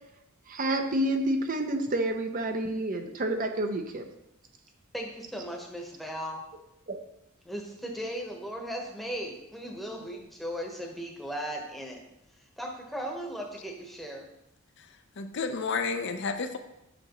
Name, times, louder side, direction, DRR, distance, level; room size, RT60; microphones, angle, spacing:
voice 1, 0.5-4.0 6.9-7.0, right 1 dB, 40° right, 5 dB, 0.6 m, -29 dB
voice 2, 4.9-6.4 7.4-12.0 12.6-14.3, equal, ahead, 0 dB, 1.0 m, -37 dB
voice 3, 15.2-16.6, left 4 dB, 55° left, 7 dB, 0.5 m, -31 dB
7.8 x 5.9 x 3.0 m, 0.84 s
head